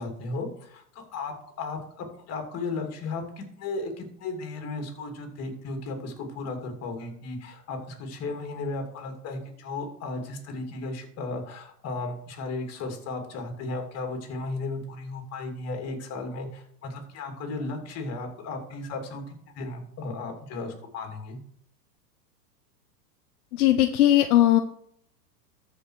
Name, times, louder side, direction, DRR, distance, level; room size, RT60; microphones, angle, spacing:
voice 1, 0.0-21.4, left 3 dB, 30° left, 4 dB, 2.9 m, -35 dB
voice 2, 23.5-24.6, left 13 dB, 65° left, 7 dB, 1.0 m, -19 dB
13.5 x 5.2 x 4.8 m, 0.65 s
hypercardioid pair, 120°, 49 cm